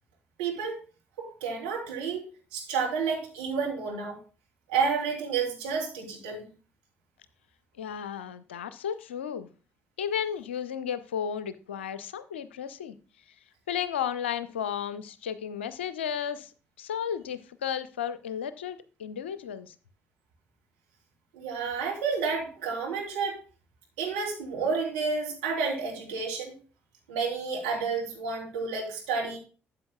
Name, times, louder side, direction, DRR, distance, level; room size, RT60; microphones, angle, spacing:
voice 1, 0.4-0.8 1.2-2.2 2.5-4.2 4.7-6.5 21.3-23.4 24.0-26.6 27.1-29.4, right 5 dB, 70° right, -1 dB, 2.7 m, -30 dB
voice 2, 7.8-9.5 10.0-13.0 13.7-16.5 16.8-19.7, left 8 dB, 75° left, 15 dB, 0.5 m, -33 dB
13.0 x 8.5 x 2.2 m, 0.35 s
figure-of-eight pair, 45°, 6 cm